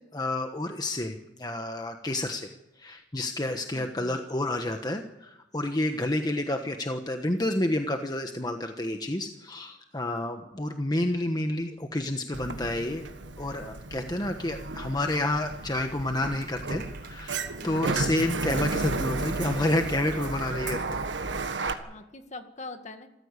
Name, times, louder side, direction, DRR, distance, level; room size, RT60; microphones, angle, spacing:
voice 1, 0.1-13.1 13.4-21.0 21.6-21.9, left 1 dB, 20° left, 5 dB, 1.2 m, -30 dB
voice 2, 3.7-4.2 17.6-18.1 21.9-23.1, left 2 dB, 40° left, 7 dB, 1.8 m, -43 dB
Sliding door, 12.3-21.7, right 3 dB, 85° right, 1.5 m, -33 dB
Clapping, 16.2-21.5, right 6 dB, 60° right, 4.1 m, -50 dB
27.0 x 14.5 x 8.3 m, 0.92 s
head